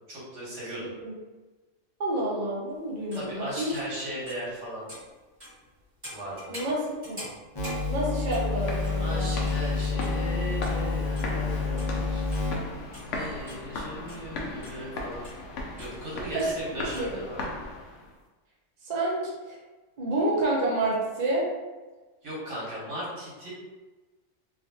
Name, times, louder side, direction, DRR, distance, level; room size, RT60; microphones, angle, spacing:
voice 1, 0.1-0.9 3.1-4.9 6.1-6.6 9.0-12.3 13.1-15.2 15.8-17.4 22.2-23.5, equal, 80° right, -7 dB, 1.6 m, -37 dB
voice 2, 0.8-1.1 2.0-3.7 6.5-7.2 7.9-9.3 16.3-16.5 16.9-17.1 18.8-19.6 20.0-21.4, right 2 dB, 45° right, -5 dB, 0.6 m, -29 dB
sound 1, 2.7-2.8 3.1-3.2 3.7-4.5 4.9-9.7 10.0-10.2 10.5-11.3 11.6-12.6 12.8-14.8 15.2-15.5 15.8-15.9 16.4-16.6 16.9-17.1, equal, 20° right, 1.5 m, -45 dB
sound 2, 7.6-13.0, left 4 dB, 25° left, 0.6 m, -29 dB
sound 3, 8.1-18.1, left 2 dB, 80° left, 0.9 m, -38 dB
3.1 x 2.6 x 2.7 m, 1.2 s
omnidirectional pair, 1.2 m